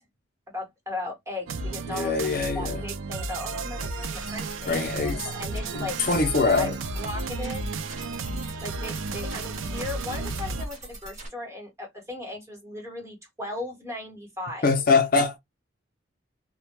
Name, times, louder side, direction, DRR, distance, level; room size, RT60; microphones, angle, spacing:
voice 1, 0.5-2.1 2.5-6.0 6.5-7.6 8.6-14.7, left 2 dB, 15° right, 0.9 m, -37 dB
sound 1, 1.5-10.7, right 3 dB, 80° right, 0.4 m, -33 dB
voice 2, 1.9-2.8 4.7-5.2 5.7-6.8 14.6-15.4, left 4 dB, 45° left, 0.4 m, -23 dB
sound 2, 3.8-11.3, right 1 dB, 40° right, 1.0 m, -43 dB
2.2 x 2.1 x 2.9 m
head